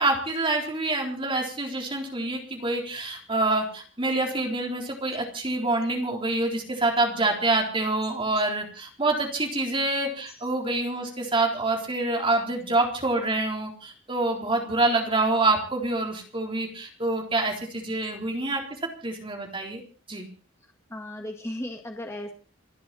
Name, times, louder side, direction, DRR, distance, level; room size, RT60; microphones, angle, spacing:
voice 1, 0.0-18.6 19.0-19.8 20.1-20.3, right 2 dB, 25° right, 1 dB, 3.9 m, -26 dB
voice 2, 20.9-22.3, left 1 dB, 15° left, 2 dB, 2.0 m, -35 dB
28.5 x 10.0 x 4.3 m, 0.38 s
head